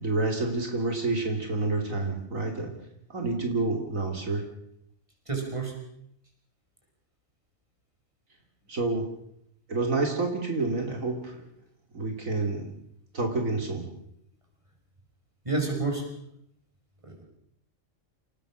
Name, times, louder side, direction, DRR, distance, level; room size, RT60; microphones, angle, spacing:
voice 1, 0.0-2.7 3.1-4.4 8.7-9.1 9.7-11.4 11.9-12.7 13.1-13.9, right 3 dB, 75° right, 3 dB, 3.6 m, -28 dB
voice 2, 5.3-5.8 15.4-16.0 17.0-17.2, right 3 dB, 20° right, 2 dB, 6.2 m, -29 dB
27.5 x 19.0 x 6.4 m, 0.73 s
omnidirectional pair, 1.4 m